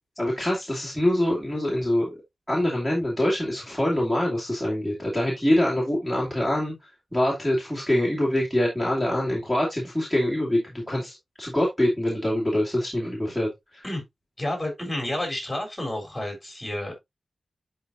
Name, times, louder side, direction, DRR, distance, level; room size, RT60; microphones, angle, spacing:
voice 1, 0.2-2.2 2.5-13.8, left 1 dB, 5° right, 2.6 m, -25 dB
voice 2, 14.4-17.0, left 1 dB, 10° left, 3.6 m, -30 dB
11.0 x 4.2 x 2.6 m
wide cardioid pair, 130°, 0 cm